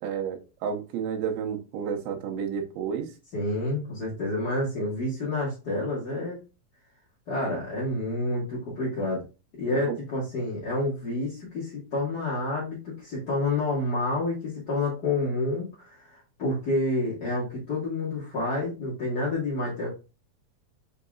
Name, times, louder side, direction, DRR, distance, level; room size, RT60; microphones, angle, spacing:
voice 1, 0.0-3.1 9.7-10.0, right 7 dB, 85° right, 2.7 m, -31 dB
voice 2, 3.3-6.4 7.3-9.2 9.6-19.9, left 2 dB, 50° left, 1.2 m, -29 dB
5.8 x 3.8 x 2.3 m
omnidirectional pair, 4.1 m